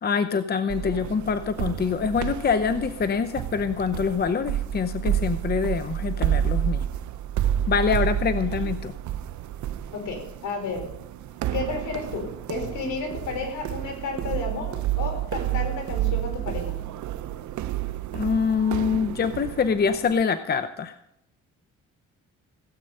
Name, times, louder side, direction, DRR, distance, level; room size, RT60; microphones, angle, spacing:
voice 1, 0.0-6.8 7.7-8.9 18.1-21.0, left 6 dB, 35° left, 11 dB, 0.7 m, -25 dB
sound 1, 0.7-20.2, right 11 dB, 70° right, 0.7 m, -30 dB
voice 2, 9.9-10.8 11.5-16.7, left 4 dB, 75° left, 3 dB, 4.2 m, -32 dB
16.5 x 8.3 x 5.5 m, 0.79 s
cardioid pair, 90°, 30 cm